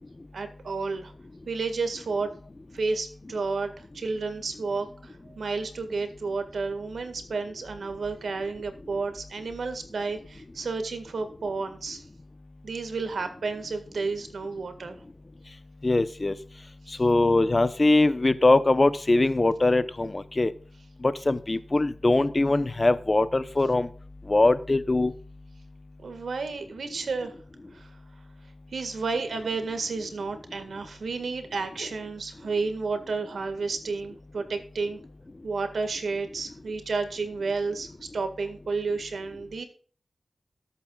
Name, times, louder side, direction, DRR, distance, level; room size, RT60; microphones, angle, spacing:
voice 1, 0.3-1.1 1.5-2.3 2.7-12.0 12.6-15.0 16.8-17.0 26.0-27.3 27.7-28.0 28.7-35.0 35.4-39.6, right 4 dB, 85° right, 8 dB, 1.8 m, -31 dB
voice 2, 15.8-16.3 17.0-20.5 21.0-23.9 24.3-25.1, left 2 dB, 35° left, 13 dB, 0.8 m, -22 dB
18.0 x 8.5 x 2.4 m, 0.43 s
cardioid pair, 60°, 0 cm